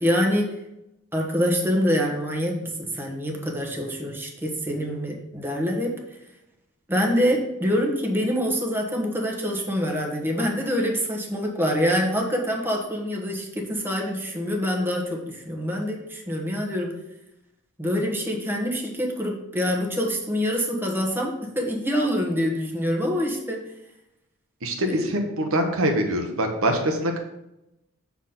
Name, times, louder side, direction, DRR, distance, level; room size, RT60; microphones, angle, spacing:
voice 1, 0.0-0.5 1.1-5.9 6.9-16.9 17.8-23.6 24.8-25.0, equal, 10° right, 0 dB, 1.2 m, -25 dB
voice 2, 24.6-27.2, right 1 dB, 70° right, 4 dB, 1.1 m, -24 dB
7.1 x 4.2 x 5.8 m, 0.88 s
head